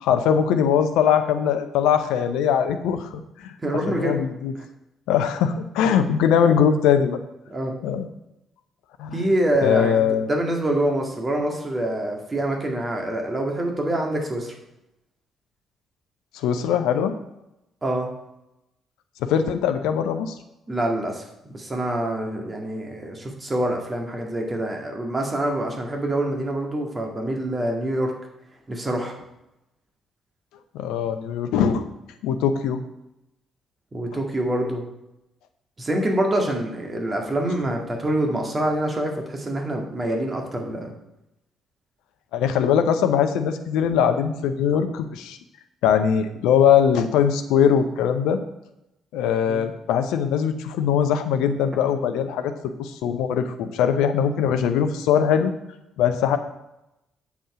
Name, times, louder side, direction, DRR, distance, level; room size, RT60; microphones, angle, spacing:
voice 1, 0.0-3.1 3.4-3.5 3.9-4.5 5.1-7.2 7.8-8.1 9.0-9.2 9.6-10.3 16.3-17.1 19.2-20.3 30.7-31.8 32.2-32.8 42.3-45.4 45.8-48.4 49.1-55.5 56.0-56.4, left 8 dB, 70° left, 9 dB, 0.6 m, -21 dB
voice 2, 3.6-4.2 7.5-7.8 9.1-14.5 17.8-18.1 20.7-21.3 21.5-28.1 28.7-29.1 33.9-34.8 35.8-40.9 49.5-49.6, right 1 dB, 30° right, 2 dB, 1.9 m, -25 dB
7.7 x 7.2 x 4.8 m, 0.88 s
figure-of-eight pair, 45°, 0 cm